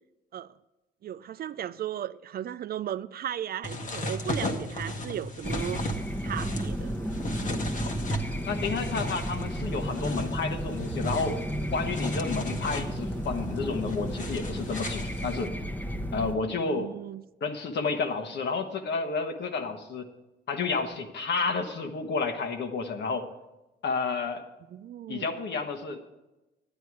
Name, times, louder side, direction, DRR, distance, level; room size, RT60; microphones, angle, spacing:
voice 1, 1.0-5.8 6.2-6.9 16.6-17.2 24.7-25.3, right 10 dB, 50° right, 0.4 m, -36 dB
sound 1, 3.6-15.5, left 1 dB, 40° left, 1.2 m, -36 dB
sound 2, 5.4-16.3, equal, 10° left, 0.9 m, -33 dB
voice 2, 8.5-11.4 11.7-15.5 16.1-16.9 17.4-20.1 20.5-23.3 23.8-24.4 25.1-26.1, left 4 dB, 60° left, 1.3 m, -31 dB
10.5 x 9.1 x 4.7 m
cardioid pair, 90°, 20 cm